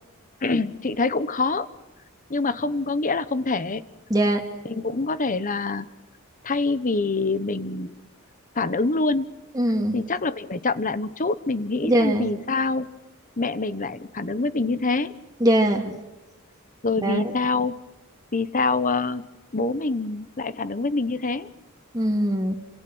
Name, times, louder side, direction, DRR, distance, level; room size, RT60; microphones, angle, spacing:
voice 1, 0.4-1.7 2.3-3.8 4.6-5.9 6.4-8.0 8.5-9.3 9.9-12.9 13.4-15.1 16.8-17.8 18.3-21.5, left 3 dB, 40° left, 14 dB, 1.1 m, -25 dB
voice 2, 4.1-4.4 9.5-10.0 11.9-12.3 15.4-16.0 17.0-17.2 21.9-22.5, right 1 dB, 15° right, 1 dB, 2.4 m, -21 dB
29.5 x 26.5 x 6.3 m, 1.0 s
head